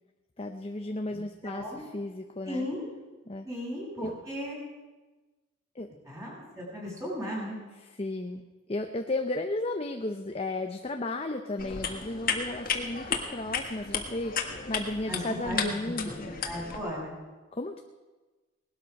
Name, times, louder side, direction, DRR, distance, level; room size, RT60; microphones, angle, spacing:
voice 1, 0.4-2.7 3.3-3.5 4.0-4.1 5.8-5.9 8.0-16.3 17.5-17.8, left 2 dB, 30° left, 5 dB, 0.7 m, -34 dB
voice 2, 1.1-1.8 2.4-2.9 3.4-4.6 6.0-7.6 15.1-15.9 16.4-17.2, equal, 15° right, -5 dB, 6.5 m, -36 dB
sound 1, 11.6-16.8, left 6 dB, 45° left, 1.6 m, -34 dB
19.0 x 12.5 x 5.3 m, 1.2 s
head